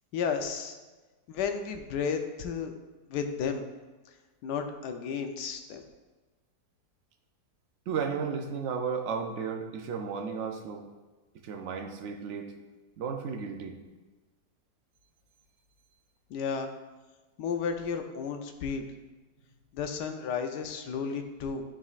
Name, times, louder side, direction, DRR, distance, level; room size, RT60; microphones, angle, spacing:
voice 1, 0.1-0.8 1.3-2.7 3.1-3.6 4.4-5.8 16.3-16.7 17.4-18.9 19.7-21.6, left 6 dB, 85° left, 6 dB, 1.2 m, -33 dB
voice 2, 7.9-10.8 11.4-12.5 13.0-13.8, right 6 dB, 70° right, 4 dB, 0.7 m, -34 dB
10.0 x 3.8 x 2.4 m, 1.2 s
omnidirectional pair, 1.8 m